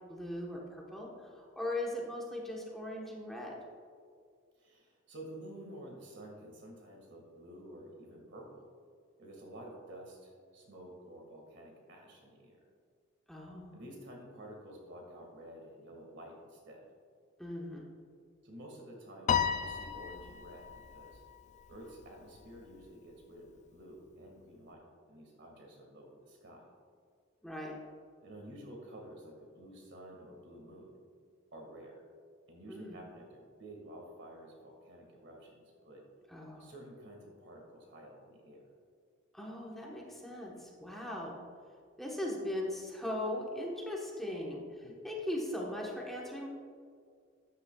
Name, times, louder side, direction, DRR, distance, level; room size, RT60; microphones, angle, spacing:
voice 1, 0.1-3.6 13.3-13.8 17.4-17.9 27.4-27.7 32.7-33.0 36.3-36.7 39.3-41.4 42.0-46.5, left 1 dB, ahead, -3 dB, 1.1 m, -39 dB
voice 2, 4.5-8.7 9.2-12.6 13.7-16.9 18.4-21.2 21.7-26.7 28.2-31.0 31.5-32.0 32.5-36.1 36.6-38.6 44.8-45.0, right 1 dB, 65° right, 0 dB, 1.8 m, -51 dB
Piano, 19.3-21.8, left 8 dB, 35° left, 0.3 m, -34 dB
12.5 x 9.6 x 2.3 m, 2.1 s
head